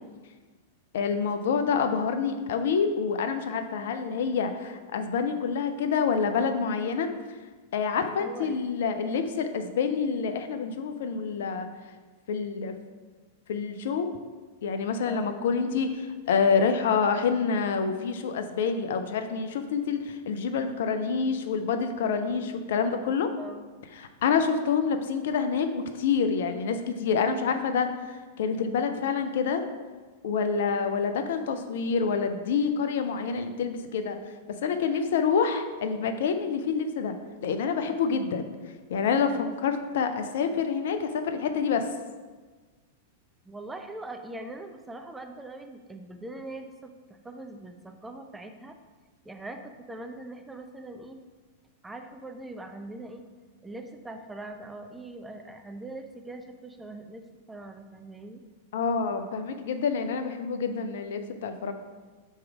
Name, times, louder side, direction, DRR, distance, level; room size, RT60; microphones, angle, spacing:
voice 1, 0.9-7.4 7.7-11.7 12.3-12.8 13.5-14.1 14.6-23.3 24.0-29.6 30.2-34.2 34.5-37.2 37.4-38.5 38.9-41.9 58.7-61.7, left 5 dB, 60° left, 7 dB, 0.5 m, -27 dB
voice 2, 8.0-8.7 15.1-15.4 23.4-23.7 39.4-39.5 43.4-48.8 49.3-51.2 51.8-53.2 53.6-58.4, right 2 dB, 10° right, 5 dB, 0.5 m, -42 dB
5.5 x 4.5 x 4.8 m, 1.4 s
figure-of-eight pair, 95°, 0 cm